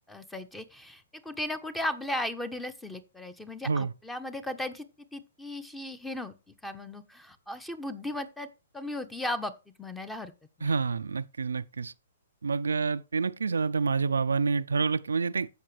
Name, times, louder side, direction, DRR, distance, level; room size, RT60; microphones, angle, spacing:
voice 1, 0.1-4.9 5.1-8.5 8.7-9.5 9.8-10.3 10.6-10.7, left 1 dB, 5° left, 1.1 m, -36 dB
voice 2, 10.6-11.9 12.4-15.5, right 4 dB, 80° right, 0.5 m, -28 dB
15.0 x 5.9 x 3.3 m
hypercardioid pair, 125°, 0 cm